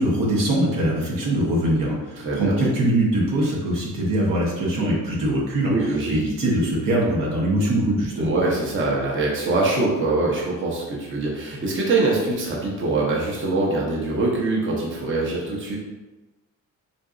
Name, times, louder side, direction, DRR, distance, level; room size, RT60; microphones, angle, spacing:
voice 1, 0.0-8.3, right 1 dB, 80° right, -3 dB, 0.9 m, -22 dB
voice 2, 2.2-2.6 5.7-6.2 8.2-15.8, right 2 dB, 35° right, -3 dB, 0.7 m, -23 dB
3.7 x 2.5 x 2.4 m, 1.1 s
cardioid pair, 100°, 33 cm